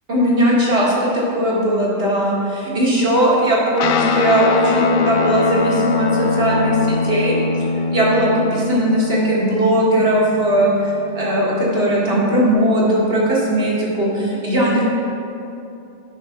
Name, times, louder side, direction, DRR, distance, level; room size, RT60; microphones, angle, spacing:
voice 1, 0.1-7.4 7.9-14.8, right 1 dB, 70° right, -6 dB, 2.0 m, -18 dB
Guitar, 3.8-12.5, left 4 dB, 65° left, 0.7 m, -23 dB
9.6 x 4.3 x 5.8 m, 2.8 s
omnidirectional pair, 1.0 m